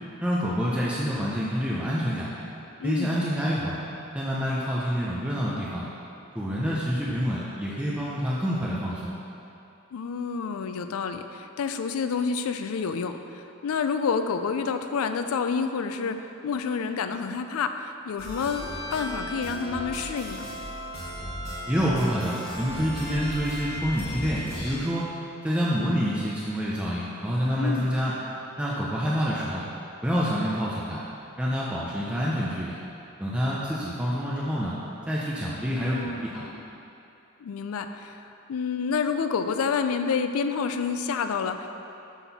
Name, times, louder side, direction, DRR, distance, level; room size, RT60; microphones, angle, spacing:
voice 1, 0.2-2.3 2.8-3.8 4.1-5.8 6.3-9.2 21.7-25.2 25.4-28.1 28.6-29.6 30.0-31.0 31.4-32.8 33.2-34.8 35.1-36.5, equal, 5° right, -7 dB, 0.5 m, -27 dB
voice 2, 2.8-3.2 9.9-20.5 27.6-27.9 35.8-36.5 37.4-41.7, left 5 dB, 80° left, 8 dB, 0.4 m, -29 dB
sound 1, 18.2-24.7, equal, 45° left, 1.4 m, -35 dB
6.0 x 5.7 x 4.1 m, 2.8 s
head